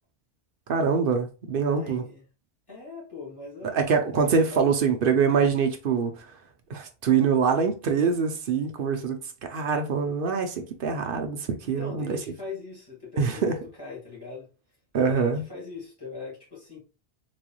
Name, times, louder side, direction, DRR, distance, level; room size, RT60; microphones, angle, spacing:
voice 1, 0.7-2.0 3.7-6.3 6.7-12.2 13.2-13.6 14.9-15.4, right 5 dB, 60° right, 0.8 m, -24 dB
voice 2, 1.7-2.2 2.7-3.9 4.5-4.7 11.8-13.5 13.8-14.5 15.0-16.8, left 4 dB, 20° left, 2.2 m, -40 dB
4.0 x 3.2 x 2.3 m
omnidirectional pair, 1.1 m